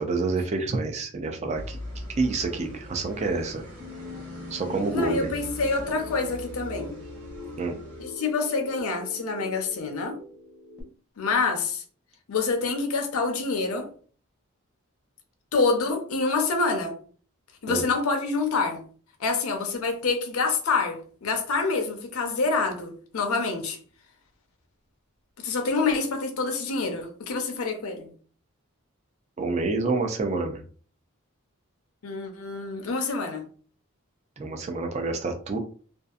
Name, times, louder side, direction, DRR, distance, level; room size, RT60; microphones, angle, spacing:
voice 1, 0.0-1.8 2.2-3.6 4.5-5.3 7.6-7.8 17.7-17.8 29.4-30.6 34.4-35.6, right 3 dB, 30° right, 0.3 m, -28 dB
sound 1, 1.5-8.0, equal, 65° right, 1.0 m, -41 dB
sound 2, 3.8-10.8, left 3 dB, 10° right, 0.8 m, -42 dB
voice 2, 4.9-6.9 8.0-10.2 11.2-11.8 12.3-13.9 15.5-17.0 17.6-18.9 19.2-23.8 25.4-28.1 32.0-33.5, left 4 dB, 80° left, 0.6 m, -27 dB
2.6 x 2.4 x 2.3 m
head